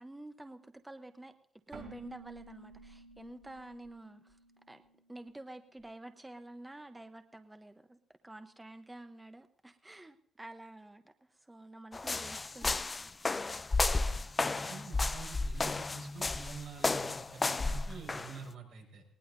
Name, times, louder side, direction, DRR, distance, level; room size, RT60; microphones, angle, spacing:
voice 1, 0.0-1.3 1.7-4.4 4.7-4.8 5.1-8.0 8.2-13.1, right 1 dB, 10° right, 7 dB, 0.9 m, -49 dB
Keyboard (musical), 1.7-5.3, right 3 dB, 55° right, 4.4 m, -53 dB
sound 1, 11.9-18.4, left 3 dB, 25° left, 0.4 m, -33 dB
voice 2, 14.1-19.0, right 6 dB, 90° right, 0 dB, 5.4 m, -48 dB
20.0 x 18.5 x 2.7 m, 0.68 s
cardioid pair, 90°, 0 cm